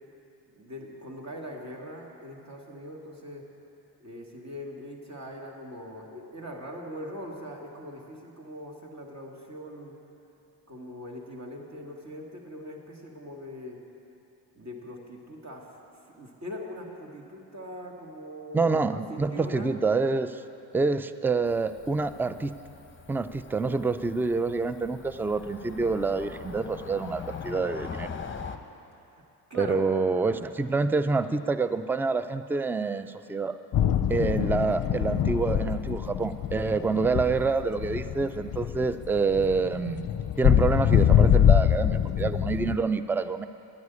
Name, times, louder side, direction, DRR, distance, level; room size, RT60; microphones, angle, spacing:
voice 1, 0.5-3.5 4.0-9.9 10.7-13.8 14.5-15.7 15.9-19.7 29.1-29.2 29.5-29.8, equal, 35° right, 0 dB, 2.3 m, -41 dB
voice 2, 18.5-20.4 20.7-22.5 23.1-28.1 29.5-33.6 34.1-40.1 40.4-43.5, right 4 dB, 5° right, 12 dB, 0.4 m, -27 dB
Cricket / Motor vehicle (road), 21.5-28.6, left 6 dB, 25° left, 0.9 m, -42 dB
sound 1, 33.7-42.8, left 10 dB, 50° left, 0.6 m, -24 dB
11.0 x 9.5 x 8.3 m, 2.8 s
cardioid pair, 60°, 45 cm